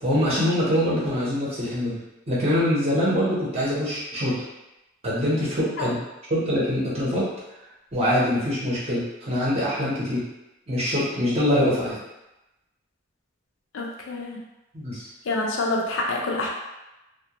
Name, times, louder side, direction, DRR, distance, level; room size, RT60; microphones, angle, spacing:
voice 1, 0.0-2.0 2.3-4.4 5.0-6.0 6.3-7.3 7.9-10.2 10.7-12.0 14.7-15.1, equal, 30° right, -8 dB, 0.8 m, -24 dB
voice 2, 13.7-14.4 15.3-16.5, left 2 dB, 70° left, -1 dB, 0.5 m, -27 dB
2.3 x 2.1 x 2.8 m, 0.97 s
head